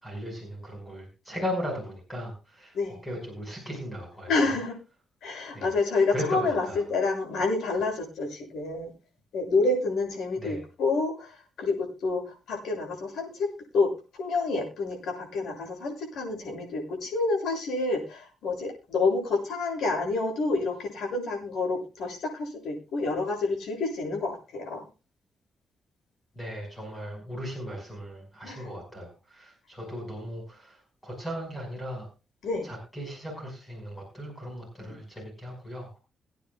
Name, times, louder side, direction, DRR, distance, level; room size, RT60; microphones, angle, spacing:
voice 1, 0.0-2.8 3.0-4.5 5.5-5.7 6.1-6.8 10.4-10.6 26.4-32.1 32.6-36.0, equal, 10° left, 1 dB, 5.4 m, -37 dB
voice 2, 4.3-4.7 5.2-8.9 9.3-13.5 13.7-13.9 14.1-24.8 28.4-28.7 32.4-32.7 34.8-35.0, left 3 dB, 80° left, 1 dB, 7.0 m, -28 dB
24.5 x 9.3 x 2.4 m, 0.31 s
cardioid pair, 140°, 0 cm